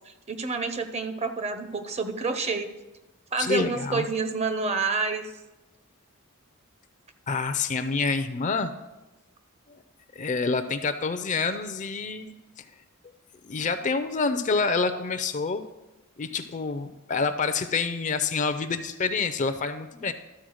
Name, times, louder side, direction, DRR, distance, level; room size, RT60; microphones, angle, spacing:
voice 1, 0.1-2.7 3.3-5.3, right 4 dB, 30° right, 8 dB, 0.6 m, -28 dB
voice 2, 3.4-4.1 7.3-8.7 9.7-9.8 10.2-12.6 13.5-15.6 16.2-20.1, left 4 dB, 35° left, 10 dB, 0.5 m, -27 dB
12.5 x 4.4 x 6.3 m, 1.0 s
head